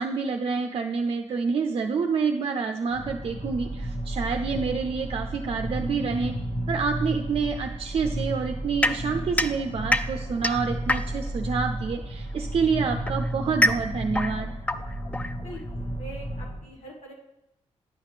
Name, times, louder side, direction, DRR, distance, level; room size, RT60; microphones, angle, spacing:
voice 1, 0.0-6.3 6.7-14.5, right 5 dB, 55° right, 5 dB, 0.4 m, -28 dB
sound 1, 2.9-16.6, right 1 dB, 45° left, 1.2 m, -33 dB
sound 2, 8.8-11.4 12.4-15.8, left 1 dB, 10° left, 0.3 m, -27 dB
voice 2, 15.9-17.1, right 1 dB, 80° left, -2 dB, 1.5 m, -42 dB
9.5 x 5.7 x 3.2 m, 0.89 s
cardioid pair, 95°, 12 cm